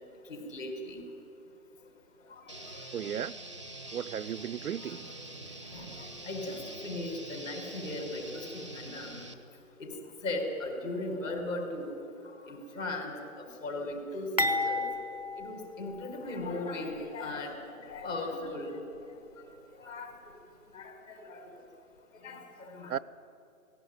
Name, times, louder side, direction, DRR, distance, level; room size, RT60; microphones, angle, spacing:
voice 1, 0.3-1.0 5.7-5.9 6.2-9.2 9.8-9.9 10.2-11.9 12.5-14.9 15.4-17.5 17.8-18.8 19.8-20.1 20.7-21.4 22.2-22.9, left 2 dB, 55° left, 4.8 m, -37 dB
sound 1, 2.5-9.3, right 1 dB, 20° right, 0.6 m, -45 dB
voice 2, 2.9-3.3 3.9-5.1 22.9-23.0, right 9 dB, 75° right, 0.6 m, -35 dB
sound 2, 14.4-16.5 16.9-17.1 17.9-18.1, left 2 dB, 25° left, 0.6 m, -32 dB
18.0 x 16.5 x 9.4 m
hypercardioid pair, 170°, 45 cm